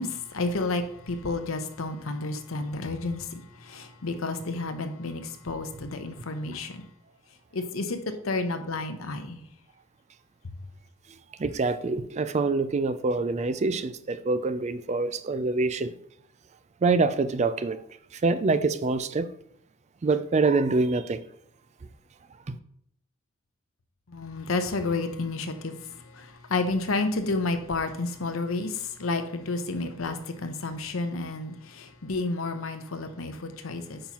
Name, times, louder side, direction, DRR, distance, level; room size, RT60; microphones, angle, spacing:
voice 1, 0.0-6.8 7.5-9.4 24.1-25.8 26.1-34.0, left 3 dB, 85° left, 0.8 m, -31 dB
voice 2, 11.4-15.9 16.8-17.8 18.2-19.3 20.0-21.2 22.5-22.6, right 3 dB, 35° right, 0.4 m, -25 dB
8.7 x 5.5 x 3.0 m
head